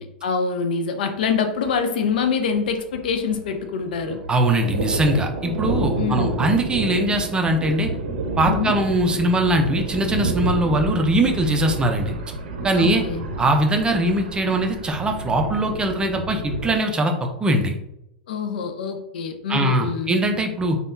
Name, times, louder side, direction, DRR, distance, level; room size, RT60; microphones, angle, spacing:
voice 1, 0.0-4.2 6.0-6.4 8.4-8.8 12.7-13.3 18.3-20.1, left 5 dB, 70° left, 6 dB, 0.4 m, -25 dB
Thunder, 1.2-1.4 1.7-1.8 2.0-3.6 3.8-16.8, right 2 dB, 75° right, 0.6 m, -29 dB
voice 2, 4.3-7.9 8.4-12.1 12.6-13.0 13.4-17.1 17.4-17.8 19.5-20.8, right 1 dB, 15° right, 4 dB, 0.5 m, -21 dB
3.4 x 2.2 x 2.6 m, 0.82 s
hypercardioid pair, 95°, 5 cm